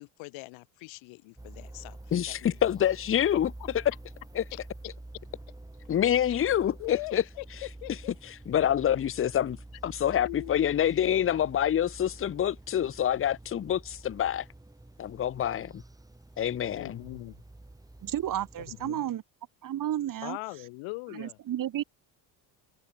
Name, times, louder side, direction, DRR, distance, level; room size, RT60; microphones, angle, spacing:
voice 1, 0.0-2.6 4.5-4.6 6.3-6.4 6.8-7.4 7.8-8.1 10.2-10.6 16.7-17.4 18.7-19.0 20.2-21.4, left 26 dB, 85° left, 1.5 m, -41 dB
sound 1, 1.4-18.9, right 2 dB, 10° right, 2.2 m, -48 dB
voice 2, 2.1-3.5 4.3-4.4 5.9-7.2 8.2-9.6 9.8-14.4 15.0-15.8 16.4-17.0, left 10 dB, 30° left, 0.6 m, -26 dB
voice 3, 18.0-19.2 19.6-20.4 21.1-21.8, right 11 dB, 45° right, 1.0 m, -32 dB
supercardioid pair, 90°, 46 cm